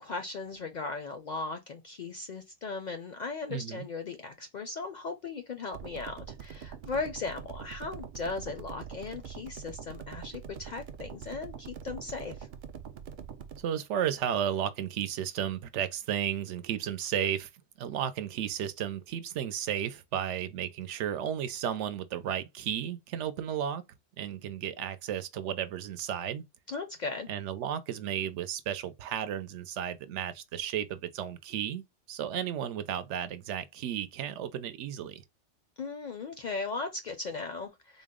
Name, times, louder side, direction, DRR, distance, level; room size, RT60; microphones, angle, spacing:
voice 1, 0.0-12.3 26.7-27.3 35.8-38.0, left 4 dB, 60° left, 0.5 m, -37 dB
voice 2, 3.5-3.9 13.6-17.5 17.8-23.8 24.2-26.4 27.3-35.2, right 9 dB, 80° right, 0.9 m, -33 dB
sound 1, 5.7-13.6, right 8 dB, 60° right, 0.6 m, -44 dB
3.9 x 2.0 x 3.6 m
omnidirectional pair, 1.2 m